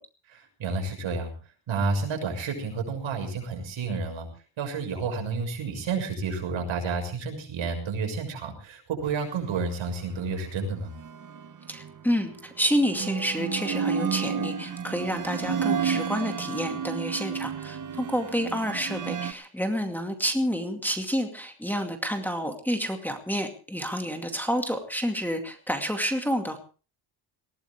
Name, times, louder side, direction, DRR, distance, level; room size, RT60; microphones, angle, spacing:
voice 1, 0.3-1.3 1.7-4.3 4.6-10.9, right 4 dB, 75° right, 4 dB, 6.9 m, -30 dB
sound 1, 11.0-11.9 12.8-19.3, right 7 dB, 40° right, 1.3 m, -31 dB
voice 2, 11.7-26.6, equal, 5° left, 3 dB, 2.3 m, -29 dB
20.5 x 17.5 x 3.6 m, 0.37 s
cardioid pair, 145°, 48 cm